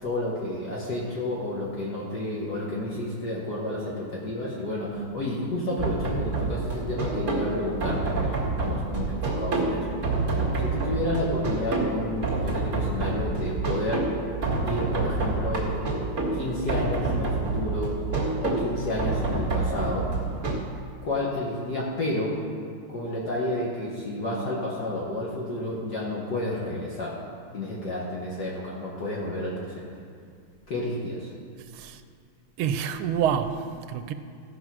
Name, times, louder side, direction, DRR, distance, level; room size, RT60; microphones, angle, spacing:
voice 1, 0.0-10.0 10.6-14.2 14.7-15.8 16.3-18.0 18.4-20.1 21.0-22.4 22.9-27.1 27.5-29.9 30.7-31.3, left 1 dB, 55° left, -5 dB, 1.9 m, -31 dB
sound 1, 5.8-20.6, right 3 dB, 35° right, 2.2 m, -28 dB
voice 2, 32.6-34.1, right 8 dB, 85° right, 10 dB, 1.5 m, -27 dB
15.5 x 5.5 x 6.1 m, 2.2 s
omnidirectional pair, 2.3 m